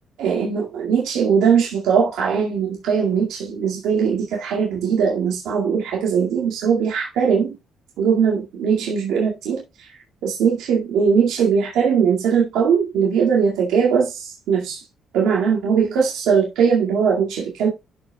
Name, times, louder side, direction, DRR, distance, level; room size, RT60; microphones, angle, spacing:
voice 1, 0.2-7.5 8.0-9.9 10.2-14.8 15.1-17.7, right 6 dB, 90° right, 2.1 m, -20 dB
12.0 x 5.6 x 2.3 m
cardioid pair, 90°, 0 cm